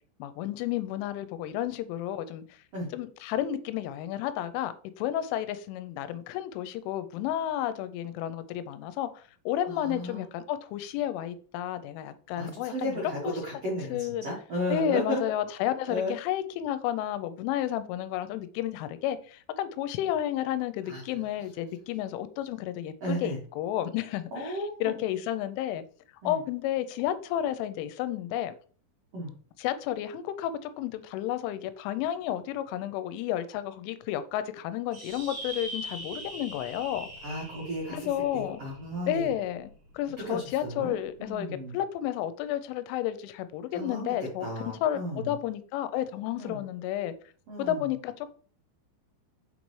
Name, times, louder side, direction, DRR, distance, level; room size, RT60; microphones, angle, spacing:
voice 1, 0.2-2.4 2.9-13.3 13.9-14.3 14.7-25.8 26.2-28.5 29.6-37.1 37.9-38.6 39.1-41.5 41.7-47.1 47.6-48.4, left 11 dB, 90° left, 3.1 m, -32 dB
voice 2, 9.7-10.3 12.4-15.2 15.9-16.1 20.8-21.0 23.0-23.4 24.3-25.0 26.2-26.4 29.1-29.3 37.2-39.3 40.2-40.9 41.2-41.7 43.7-45.3 46.4-46.6 47.5-47.9, equal, 85° right, 1.3 m, -34 dB
sound 1, 34.9-39.7, right 1 dB, 40° right, 1.9 m, -42 dB
6.5 x 5.3 x 3.1 m
omnidirectional pair, 5.5 m